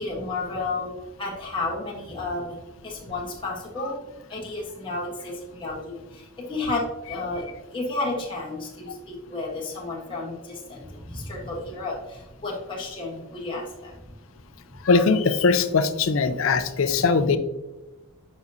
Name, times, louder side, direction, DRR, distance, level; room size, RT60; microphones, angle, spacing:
voice 1, 0.0-2.6 2.8-4.0 4.3-14.2, left 2 dB, 25° left, -3 dB, 1.1 m, -32 dB
voice 2, 14.8-17.4, left 4 dB, 70° left, 11 dB, 0.5 m, -20 dB
7.4 x 5.3 x 2.6 m, 1.0 s
head